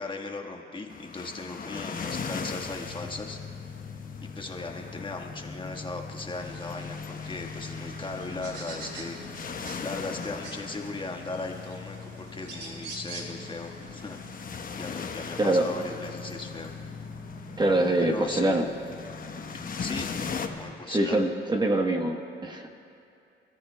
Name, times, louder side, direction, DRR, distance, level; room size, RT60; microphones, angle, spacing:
voice 1, 0.0-3.4 4.2-9.2 9.8-14.2 14.8-16.7 18.0-18.5 19.5-20.1 20.4-21.3, left 3 dB, 25° left, 1 dB, 1.5 m, -38 dB
sound 1, 0.9-20.5, left 5 dB, 45° left, 1.1 m, -40 dB
sound 2, 2.0-20.7, left 4 dB, 65° left, 2.3 m, -43 dB
sound 3, 6.3-14.4, right 3 dB, 60° right, 2.7 m, -46 dB
voice 2, 17.6-18.7 20.9-22.7, right 1 dB, 20° right, 2 dB, 1.2 m, -24 dB
29.0 x 14.0 x 2.3 m, 2.6 s
cardioid pair, 90°, 20 cm